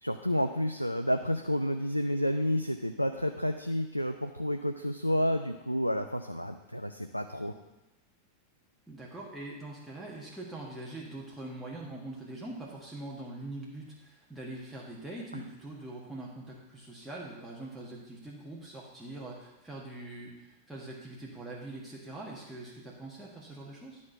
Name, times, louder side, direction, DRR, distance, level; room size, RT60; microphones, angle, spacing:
voice 1, 0.0-7.5 15.3-15.4, equal, 90° left, 6 dB, 0.4 m, -30 dB
voice 2, 8.9-24.0, right 2 dB, 5° right, -5 dB, 1.5 m, -43 dB
11.5 x 4.3 x 5.8 m, 1.0 s
figure-of-eight pair, 90°, 0 cm